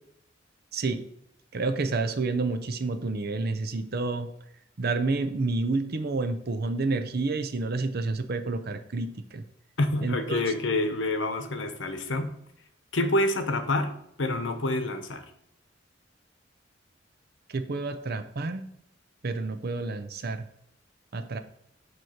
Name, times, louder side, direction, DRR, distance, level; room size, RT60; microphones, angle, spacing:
voice 1, 0.7-1.0 1.5-4.3 4.8-9.4 10.0-10.4 17.5-18.7 19.2-20.4 21.1-21.4, right 3 dB, 55° right, 9 dB, 0.6 m, -29 dB
voice 2, 9.8-12.3 12.9-15.2, left 2 dB, 75° left, 7 dB, 0.9 m, -27 dB
9.2 x 3.1 x 5.7 m, 0.75 s
head